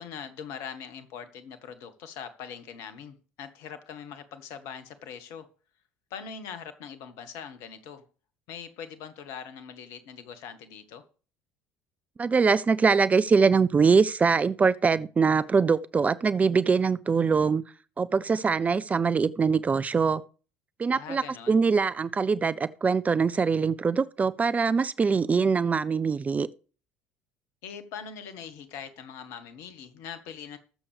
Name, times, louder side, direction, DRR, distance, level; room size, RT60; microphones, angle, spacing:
voice 1, 0.0-5.5 6.1-8.1 8.5-11.0 20.9-21.6 27.6-30.6, left 7 dB, 55° left, 1.4 m, -42 dB
voice 2, 12.2-17.6 18.0-20.2 20.8-26.5, right 5 dB, 25° right, 0.5 m, -23 dB
20.5 x 7.1 x 3.4 m
figure-of-eight pair, 60°, 6 cm